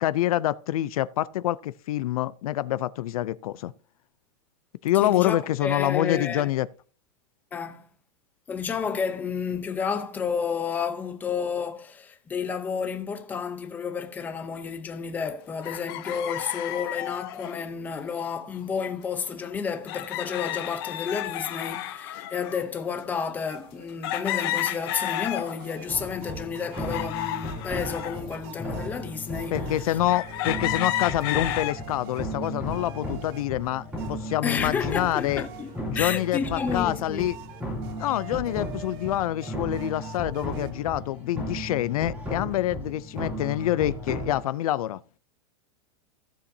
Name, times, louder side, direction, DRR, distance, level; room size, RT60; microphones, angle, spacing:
voice 1, 0.0-3.7 4.8-6.7 29.5-35.4 35.9-37.4 38.0-45.0, left 14 dB, 75° left, 0.5 m, -26 dB
voice 2, 4.9-6.5 7.5-7.9 8.5-30.0 34.4-37.2, left 6 dB, 10° left, 0.6 m, -31 dB
sound 1, 15.6-17.6 18.7-18.9 19.1-19.2 19.9-22.7 23.2-23.3 24.0-25.8 26.2-28.2 28.8-28.9 30.1-31.8 32.3-32.8, left 13 dB, 40° left, 0.8 m, -32 dB
sound 2, 23.5-40.7, right 8 dB, 40° right, 1.1 m, -47 dB
sound 3, 25.9-44.4, equal, 5° right, 2.4 m, -35 dB
15.5 x 7.2 x 2.7 m
supercardioid pair, 170°, 19 cm